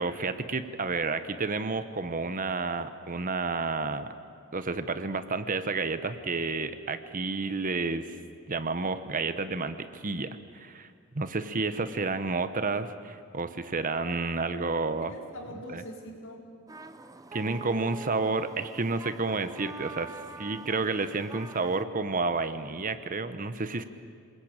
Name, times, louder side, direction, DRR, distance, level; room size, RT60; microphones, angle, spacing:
voice 1, 0.0-4.1 4.5-8.1 8.5-10.9 11.1-15.1 15.7-15.8 17.3-23.8, right 3 dB, 40° right, 11 dB, 1.0 m, -30 dB
voice 2, 11.2-11.8 14.9-16.5, equal, 60° left, 0 dB, 4.7 m, -44 dB
sound 1, 16.7-21.8, right 3 dB, 15° right, 0.8 m, -45 dB
29.0 x 21.0 x 9.0 m, 2.1 s
head